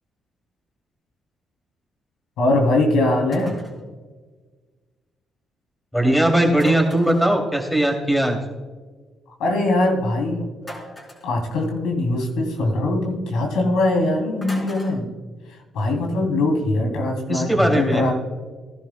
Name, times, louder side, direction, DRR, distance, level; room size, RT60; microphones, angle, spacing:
voice 1, 2.4-3.6 9.4-10.5 11.2-15.1 15.5-18.1, left 2 dB, 85° left, 1 dB, 2.9 m, -21 dB
sound 1, 3.3-3.8 6.5-7.4 10.6-11.3 14.4-15.0, equal, 25° left, 3.7 m, -36 dB
voice 2, 5.9-8.4 17.3-18.0, right 1 dB, 5° left, 2 dB, 2.7 m, -19 dB
17.5 x 11.5 x 2.2 m, 1.4 s
cardioid pair, 90°, 0 cm